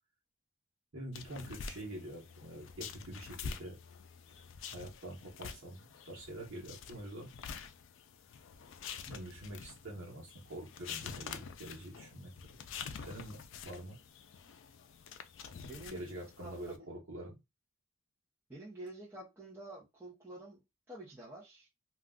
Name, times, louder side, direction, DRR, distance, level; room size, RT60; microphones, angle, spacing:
voice 1, 0.9-3.8 4.7-7.3 9.1-12.3 13.0-14.0 15.9-17.4, right 1 dB, 80° right, 1.0 m, -46 dB
sound 1, 1.1-16.8, left 6 dB, 65° left, 0.4 m, -47 dB
voice 2, 15.6-16.1 16.4-16.9 18.5-20.6 20.9-21.7, right 1 dB, 10° right, 0.7 m, -49 dB
2.4 x 2.3 x 3.6 m
head